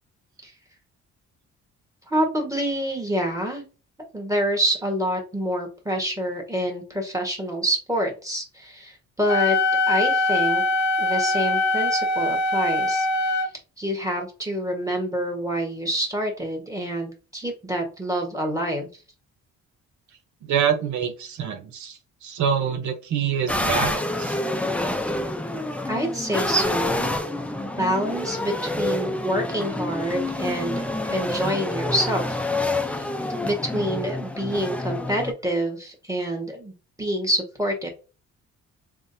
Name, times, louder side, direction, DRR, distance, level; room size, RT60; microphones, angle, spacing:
voice 1, 2.1-3.6 4.1-9.6 9.9-10.6 11.0-13.4 13.8-19.0 25.9-27.1 27.8-32.4 32.8-33.1 33.4-37.9, right 1 dB, 10° right, 1 dB, 1.4 m, -27 dB
Wind instrument woodwind instrument, 9.3-13.5, left 2 dB, 65° left, 0.7 m, -22 dB
voice 2, 20.4-24.4, right 8 dB, 70° right, 4 dB, 0.9 m, -26 dB
sound 1, 23.5-35.3, left 2 dB, 5° left, 0.6 m, -27 dB
3.6 x 3.2 x 2.7 m, 0.32 s
cardioid pair, 90°, 30 cm